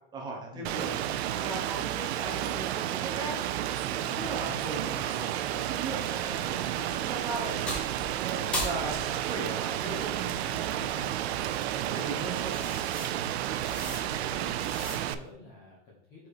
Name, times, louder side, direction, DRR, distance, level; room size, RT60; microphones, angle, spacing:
voice 1, 0.1-0.9 1.3-3.4 3.9-7.8 8.1-9.0 9.2-12.6, right 3 dB, 15° right, -1 dB, 1.0 m, -38 dB
Rain, 0.6-15.1, right 12 dB, 80° right, 0.5 m, -32 dB
voice 2, 4.0-4.7 8.7-9.1 13.2-13.5 13.9-16.3, left 3 dB, 30° left, -2 dB, 0.9 m, -48 dB
sound 1, 6.2-15.3, left 1 dB, 5° left, 0.3 m, -41 dB
4.4 x 4.4 x 4.9 m, 0.80 s
supercardioid pair, 175°, 32 cm